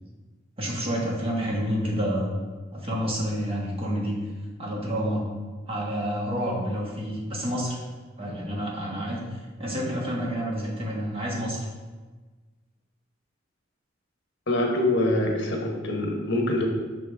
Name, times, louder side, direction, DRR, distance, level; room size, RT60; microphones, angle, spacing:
voice 1, 0.6-2.4 2.7-4.1 4.6-5.3 5.7-7.8 8.2-9.2 9.6-11.7, equal, 30° right, -3 dB, 1.3 m, -29 dB
voice 2, 14.5-16.7, left 1 dB, 65° left, 1 dB, 1.1 m, -24 dB
5.9 x 5.1 x 3.5 m, 1.3 s
head